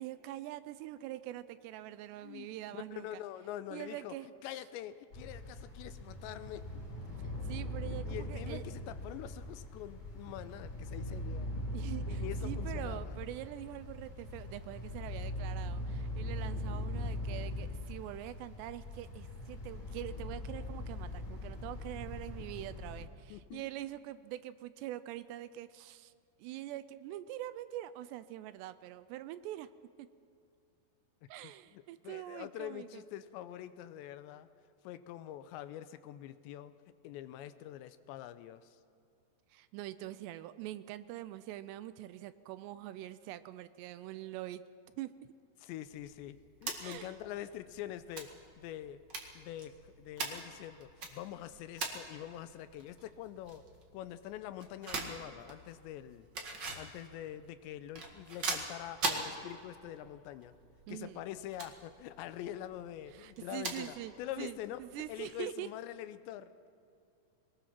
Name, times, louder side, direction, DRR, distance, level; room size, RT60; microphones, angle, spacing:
voice 1, 0.0-3.2 3.7-4.3 7.4-8.6 11.7-26.1 26.4-29.7 30.0-30.1 31.3-33.0 39.5-44.6 45.0-45.3 46.8-47.1 60.9-61.2 63.1-65.7, right 14 dB, 80° right, 14 dB, 2.6 m, -44 dB
voice 2, 3.0-4.2 4.4-6.7 8.1-11.5 12.1-13.2 23.3-23.7 31.4-34.5 34.8-36.7 37.0-38.8 40.0-40.1 45.6-49.0 49.4-53.6 53.9-56.3 56.8-60.5 60.9-64.8 65.1-66.7, left 12 dB, 90° left, 12 dB, 2.9 m, -45 dB
sound 1, 5.1-23.1, left 1 dB, 35° left, 4.7 m, -40 dB
sound 2, 45.9-65.4, right 3 dB, 40° right, 1.6 m, -44 dB
23.0 x 20.0 x 5.9 m, 2.6 s
omnidirectional pair, 5.1 m